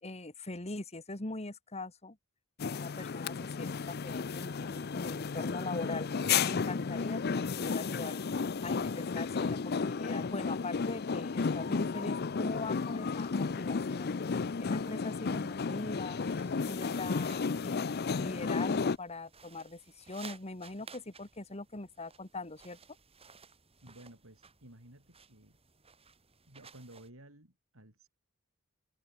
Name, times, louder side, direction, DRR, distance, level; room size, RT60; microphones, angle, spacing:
voice 1, 0.0-2.2 2.7-6.1 6.4-8.2 8.6-14.1 14.6-16.2 16.7-22.8, left 2 dB, 30° left, 1.9 m, -41 dB
sound 1, 2.6-19.0, left 5 dB, 50° left, 0.5 m, -33 dB
sound 2, 8.7-17.8, left 4 dB, 90° left, 7.8 m, -59 dB
sound 3, 16.0-27.1, right 5 dB, 30° right, 6.0 m, -57 dB
voice 2, 23.8-25.6 26.5-28.1, right 1 dB, 80° right, 5.7 m, -55 dB
head